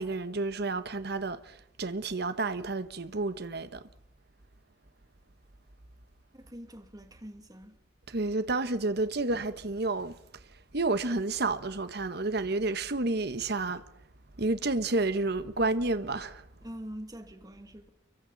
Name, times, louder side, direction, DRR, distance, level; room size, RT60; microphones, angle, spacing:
voice 1, 0.0-3.8 8.1-10.1 10.7-13.8 14.4-16.4, right 2 dB, 65° right, 1.3 m, -30 dB
voice 2, 6.3-7.7 16.6-17.9, equal, 20° right, 2.5 m, -44 dB
30.0 x 24.0 x 4.1 m
head